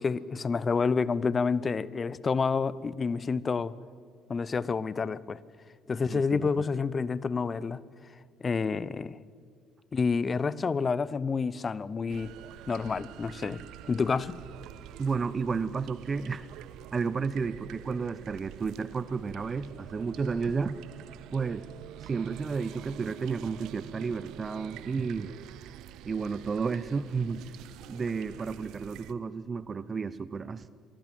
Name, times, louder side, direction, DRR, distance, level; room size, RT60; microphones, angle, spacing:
voice 1, 0.0-3.7 4.3-5.4 5.9-7.8 8.4-9.2 9.9-12.3 12.7-14.4, left 5 dB, 35° left, 19 dB, 0.8 m, -29 dB
voice 2, 6.1-6.6 15.0-16.5 16.9-20.8 21.3-21.7 22.0-25.3 26.0-27.5 27.9-30.7, right 5 dB, 35° right, 17 dB, 0.8 m, -32 dB
sound 1, 12.1-29.1, right 12 dB, 60° right, 0.8 m, -47 dB
27.0 x 18.5 x 7.7 m, 2.1 s
hypercardioid pair, 55°, 0 cm